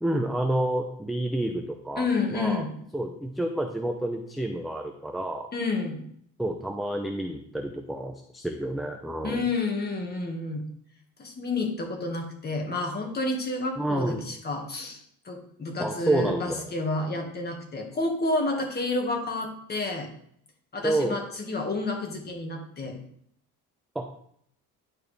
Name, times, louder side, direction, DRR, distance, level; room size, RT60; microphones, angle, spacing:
voice 1, 0.0-2.1 2.3-2.6 2.9-5.5 6.4-9.4 13.8-14.2 15.8-16.6 20.8-21.2 24.0-24.1, right 1 dB, ahead, 3 dB, 0.5 m, -29 dB
voice 2, 2.0-2.7 5.5-6.0 9.2-10.6 11.2-15.0 15.2-20.1 20.7-23.0, left 2 dB, 25° left, 2 dB, 1.6 m, -30 dB
10.5 x 4.6 x 3.3 m, 0.66 s
cardioid pair, 140°, 35 cm